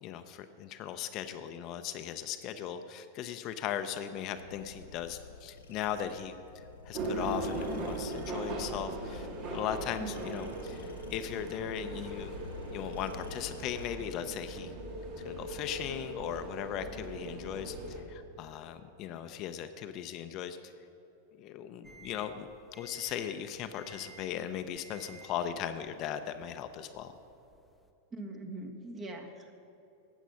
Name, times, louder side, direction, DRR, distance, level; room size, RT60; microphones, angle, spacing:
voice 1, 0.0-12.3 12.7-14.7 15.2-20.7 21.4-22.5 22.8-27.1, left 9 dB, 45° left, 9 dB, 0.6 m, -38 dB
sound 1, 4.3-13.9, left 5 dB, 85° left, 0.7 m, -51 dB
sound 2, 6.9-18.0, right 1 dB, 50° right, 1.8 m, -39 dB
voice 2, 10.0-10.4 28.1-29.6, right 2 dB, 25° right, 4 dB, 1.5 m, -42 dB
sound 3, 21.8-27.9, right 4 dB, ahead, 0.9 m, -56 dB
12.5 x 8.1 x 5.7 m, 2.8 s
hypercardioid pair, 110°, 0 cm